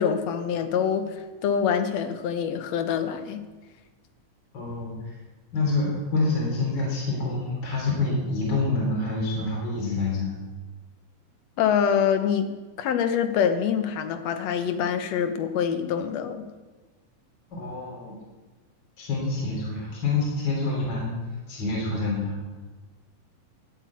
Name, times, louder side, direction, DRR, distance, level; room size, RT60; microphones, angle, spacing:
voice 1, 0.0-3.4 11.6-12.5 12.8-16.5, left 7 dB, 65° left, 8 dB, 1.9 m, -25 dB
voice 2, 4.5-5.2 5.5-10.3 17.5-18.1 19.0-21.2 21.5-22.4, left 3 dB, 35° left, -4 dB, 4.0 m, -27 dB
12.0 x 8.0 x 8.4 m, 1.2 s
omnidirectional pair, 3.7 m